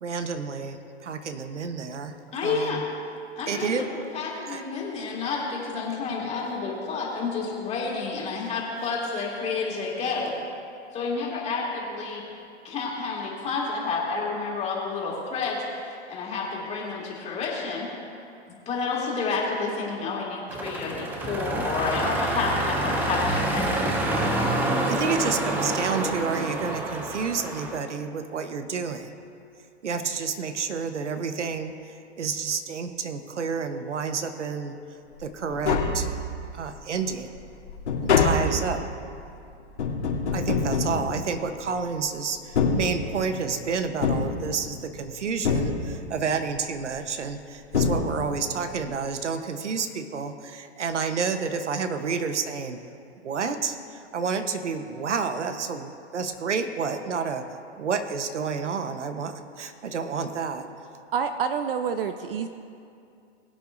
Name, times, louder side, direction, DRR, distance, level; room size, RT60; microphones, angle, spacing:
voice 1, 0.0-2.1 2.4-2.8 3.5-3.9 4.5-4.6 24.8-29.1 29.8-34.8 35.2-36.1 36.5-37.3 38.0-38.8 40.3-52.8 53.2-57.4 57.8-60.7, right 5 dB, 85° right, 8 dB, 1.1 m, -30 dB
voice 2, 2.3-2.8 3.4-10.3 10.9-12.2 12.6-17.9 18.5-24.4, left 4 dB, 20° left, -3 dB, 2.4 m, -30 dB
sound 1, 20.5-27.8, right 1 dB, 5° right, 0.4 m, -27 dB
Tap, 35.2-35.3 35.5-36.6 37.0-41.8 42.4-43.5 44.0-45.0 45.4-46.3 47.3-47.4 47.7-48.6 48.8-48.9, left 4 dB, 75° left, 3.0 m, -26 dB
voice 3, 61.1-62.5, right 7 dB, 55° right, 9 dB, 0.7 m, -27 dB
21.5 x 8.4 x 2.6 m, 2.5 s
hypercardioid pair, 135°, 35 cm